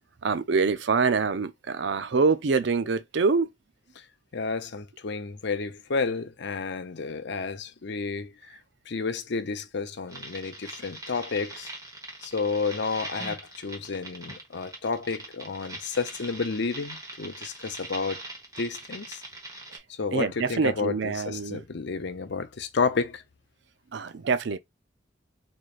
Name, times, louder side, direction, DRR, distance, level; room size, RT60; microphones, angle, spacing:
voice 1, 0.2-3.5 19.7-19.8 20.1-21.6 23.9-24.6, right 4 dB, 65° right, 0.5 m, -25 dB
voice 2, 4.3-8.3 8.9-11.7 12.2-18.2 18.6-19.2 20.0-23.2, left 4 dB, 65° left, 0.6 m, -31 dB
sound 1, 10.1-19.8, right 2 dB, 20° right, 1.2 m, -41 dB
4.0 x 3.2 x 2.4 m
head